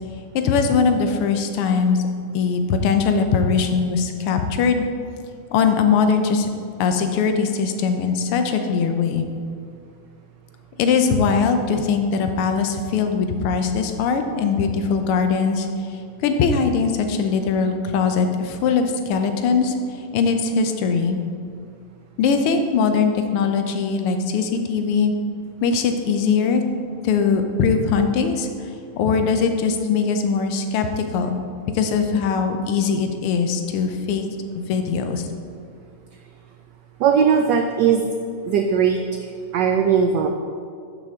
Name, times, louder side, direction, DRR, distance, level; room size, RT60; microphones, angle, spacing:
voice 1, 0.3-2.0 2.3-4.8 5.5-6.5 6.8-9.3 10.8-15.7 16.2-19.7 20.1-21.2 22.2-25.1 25.6-26.6 27.0-28.5 29.0-31.4 31.7-34.3 34.5-35.3, left 5 dB, 85° left, 6 dB, 1.7 m, -21 dB
voice 2, 37.0-38.1 38.5-39.0 39.5-40.3, right 7 dB, 85° right, 5 dB, 0.9 m, -18 dB
12.0 x 5.6 x 3.6 m, 2.3 s
omnidirectional pair, 2.4 m